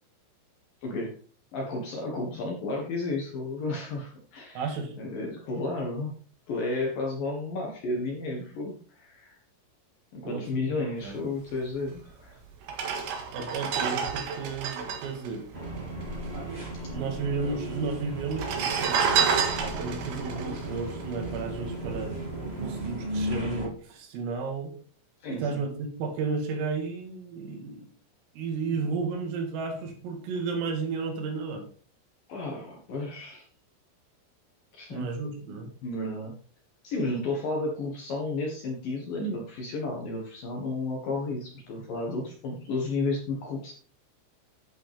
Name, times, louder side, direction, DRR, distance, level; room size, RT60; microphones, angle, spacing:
voice 1, 0.8-1.2 1.5-6.2 6.5-9.4 10.1-12.4 25.2-25.6 32.3-33.4 34.7-35.1 35.5-36.3 36.8-43.7, left 2 dB, 60° left, 0 dB, 2.5 m, -32 dB
voice 2, 4.6-4.9 10.2-11.2 13.3-15.5 16.9-19.1 19.6-22.1 22.6-24.7 25.3-27.9 28.3-31.6 34.9-35.7, right 4 dB, 80° right, 3 dB, 4.7 m, -33 dB
sound 1, 12.0-12.1 12.6-16.3 16.6-16.7 16.8-17.5 18.2-21.7 22.2-22.4, right 6 dB, 65° right, 2.9 m, -29 dB
sound 2, 15.5-23.7, right 1 dB, 30° right, 1.0 m, -35 dB
11.5 x 8.8 x 3.5 m, 0.43 s
omnidirectional pair, 6.0 m